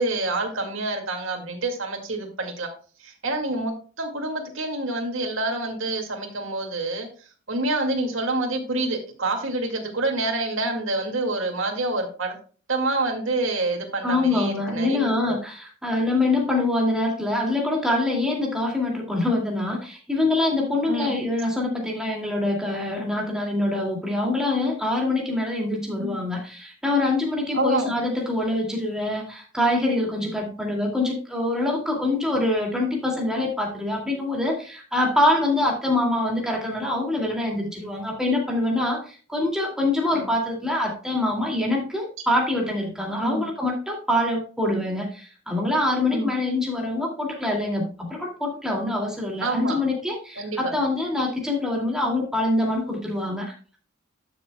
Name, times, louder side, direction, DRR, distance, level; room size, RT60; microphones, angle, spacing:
voice 1, 0.0-2.7 3.0-3.7 4.0-7.1 7.5-12.4 12.7-15.4 20.9-21.2 26.0-26.2 27.5-28.0 40.1-40.3 43.2-43.5 46.1-46.3 49.4-49.8 50.4-50.7, right 2 dB, 70° right, 3 dB, 2.2 m, -27 dB
voice 2, 14.0-53.8, left 2 dB, 5° right, -1 dB, 2.4 m, -25 dB
12.0 x 6.8 x 2.3 m, 0.38 s
head